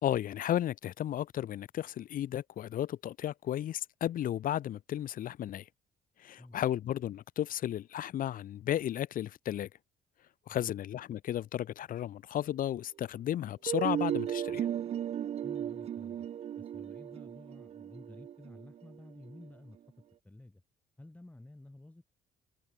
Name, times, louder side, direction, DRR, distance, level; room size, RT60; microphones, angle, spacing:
voice 1, 0.0-5.7 6.2-9.7 10.5-14.7, left 11 dB, 55° left, 1.0 m, -34 dB
sound 1, 13.7-19.5, right 10 dB, 40° right, 0.4 m, -35 dB
voice 2, 15.4-16.3 16.6-19.8 20.2-20.6 21.0-22.0, left 1 dB, 10° left, 4.2 m, -52 dB
cardioid pair, 110°, 17 cm